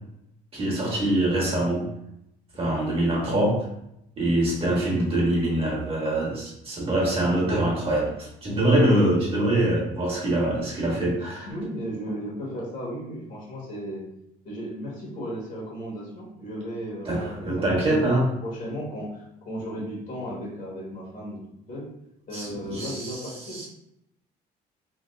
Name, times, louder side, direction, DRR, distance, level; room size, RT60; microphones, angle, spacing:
voice 1, 0.5-1.9 2.6-3.7 4.2-11.5 17.0-18.3 22.3-23.2 23.5-23.7, right 1 dB, 35° right, -4 dB, 1.3 m, -24 dB
voice 2, 11.5-14.0 14.4-17.5 17.7-18.1 18.4-21.4 21.7-21.8 22.3-23.7, equal, 50° left, -4 dB, 1.5 m, -35 dB
3.4 x 2.7 x 2.6 m, 0.80 s
cardioid pair, 110°, 17 cm